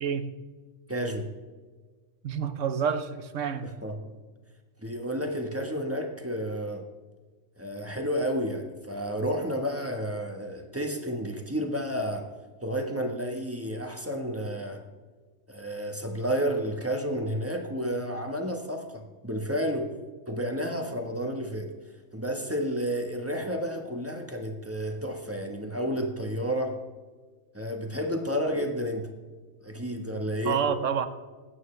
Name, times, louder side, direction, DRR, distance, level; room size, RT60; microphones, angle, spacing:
voice 1, 0.0-0.3 2.2-3.7 30.5-31.1, right 7 dB, 65° right, 10 dB, 1.1 m, -28 dB
voice 2, 0.9-1.3 3.6-4.0 4.8-6.9 7.6-12.3 12.6-14.8 15.5-19.9 20.3-21.7 22.1-26.8 27.5-29.1 29.6-30.6, equal, 10° right, 3 dB, 1.2 m, -31 dB
20.5 x 9.3 x 3.3 m, 1.4 s
omnidirectional pair, 1.4 m